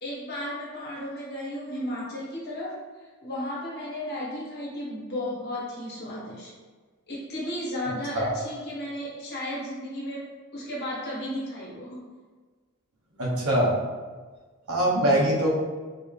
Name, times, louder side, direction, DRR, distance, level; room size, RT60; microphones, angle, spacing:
voice 1, 0.0-2.8 3.2-6.5 7.1-12.0, left 1 dB, 45° left, -7 dB, 1.4 m, -34 dB
voice 2, 13.2-13.7 14.7-15.5, right 1 dB, 85° right, -4 dB, 1.1 m, -22 dB
4.3 x 2.7 x 3.3 m, 1.4 s
head